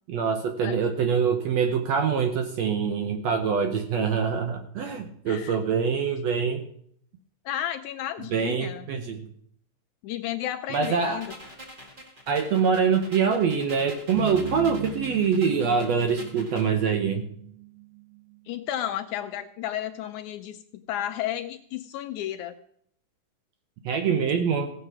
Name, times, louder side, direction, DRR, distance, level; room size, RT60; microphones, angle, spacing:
voice 1, 0.1-6.6 8.3-9.3 10.7-11.3 12.3-17.3 23.8-24.7, right 6 dB, 70° right, 5 dB, 1.7 m, -24 dB
voice 2, 5.3-5.6 7.5-8.9 10.0-11.3 18.5-22.6, left 12 dB, 80° left, 8 dB, 1.8 m, -33 dB
sound 1, 10.7-16.7, equal, 25° right, 1.2 m, -46 dB
sound 2, 14.1-18.5, right 6 dB, 85° right, 5.2 m, -38 dB
16.0 x 7.9 x 6.0 m, 0.67 s
omnidirectional pair, 3.9 m